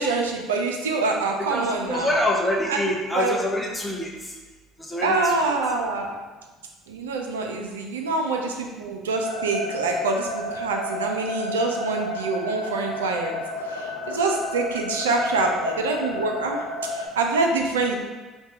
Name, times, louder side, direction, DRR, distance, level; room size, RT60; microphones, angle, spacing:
voice 1, 0.0-2.2 2.7-3.4 5.0-6.2 6.9-13.4 13.7-16.6 16.9-17.9, right 3 dB, 85° right, 2 dB, 0.3 m, -25 dB
voice 2, 1.4-4.4 4.8-5.6, left 1 dB, 10° left, -1 dB, 0.6 m, -26 dB
sound 1, 9.2-17.1, left 1 dB, 80° left, 0.3 m, -32 dB
2.6 x 2.2 x 3.5 m, 1.3 s
hypercardioid pair, 65°, 0 cm